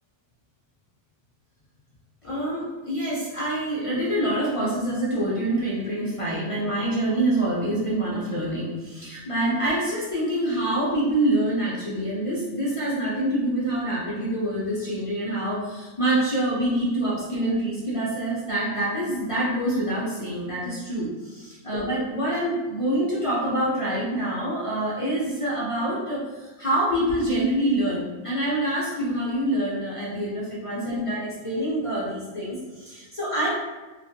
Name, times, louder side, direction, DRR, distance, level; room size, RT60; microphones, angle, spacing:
voice 1, 2.2-33.5, right 1 dB, 40° left, -7 dB, 0.4 m, -26 dB
3.0 x 2.6 x 2.6 m, 1.2 s
omnidirectional pair, 1.3 m